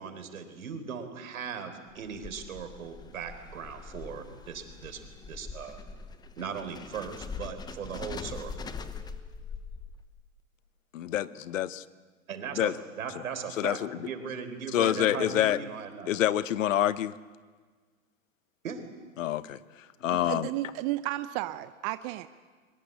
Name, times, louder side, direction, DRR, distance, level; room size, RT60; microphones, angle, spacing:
voice 1, 0.0-5.8 6.4-8.5 12.3-16.1 18.6-18.8, right 6 dB, 75° right, 8 dB, 4.1 m, -38 dB
sound 1, 1.9-10.2, left 5 dB, 10° left, 0.9 m, -42 dB
voice 2, 10.9-11.8 12.6-12.7 13.6-14.1 14.7-15.6 16.1-17.1 19.2-19.6 20.0-20.5, left 12 dB, 65° left, 16 dB, 1.1 m, -27 dB
voice 3, 20.1-22.3, right 16 dB, 30° right, 12 dB, 0.6 m, -33 dB
22.5 x 21.5 x 8.7 m, 1.5 s
hypercardioid pair, 130°, 41 cm